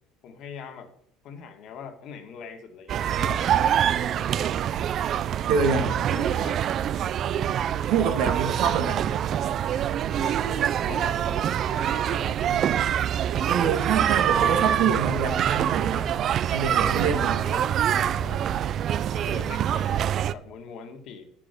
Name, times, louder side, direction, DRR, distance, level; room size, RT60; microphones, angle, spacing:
voice 1, 0.2-0.9 1.2-4.5 5.9-6.8 8.6-8.8 10.1-12.7 13.2-14.4 16.8-18.5 19.1-21.3, left 6 dB, 60° left, 6 dB, 1.8 m, -42 dB
sound 1, 2.9-20.3, right 10 dB, 50° right, 0.4 m, -25 dB
voice 2, 5.5-5.9 7.9-9.1 13.5-16.1 16.5-17.4, right 5 dB, 70° right, 6 dB, 1.9 m, -26 dB
9.9 x 6.2 x 6.6 m, 0.66 s
supercardioid pair, 95°, 0 cm